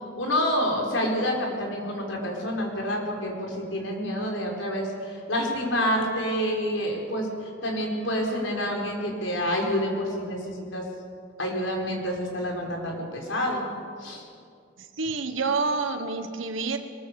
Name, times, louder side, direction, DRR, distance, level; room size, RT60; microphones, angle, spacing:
voice 1, 0.2-7.3 7.6-10.8 11.4-13.6 14.0-14.2, equal, 80° left, 0 dB, 5.1 m, -28 dB
voice 2, 14.8-16.8, right 4 dB, 85° right, 7 dB, 1.3 m, -28 dB
22.0 x 21.0 x 7.1 m, 2.2 s
head